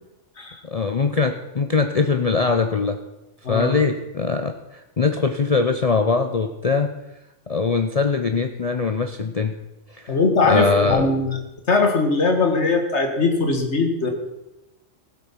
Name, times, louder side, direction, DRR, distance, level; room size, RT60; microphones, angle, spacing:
voice 1, 0.6-3.0 3.5-6.9 7.5-9.6 9.9-10.2 10.4-11.1, left 4 dB, 40° left, 7 dB, 0.6 m, -22 dB
voice 2, 10.1-11.4 11.7-14.1, left 3 dB, 65° left, 5 dB, 2.0 m, -20 dB
15.0 x 8.3 x 5.8 m, 0.97 s
omnidirectional pair, 1.2 m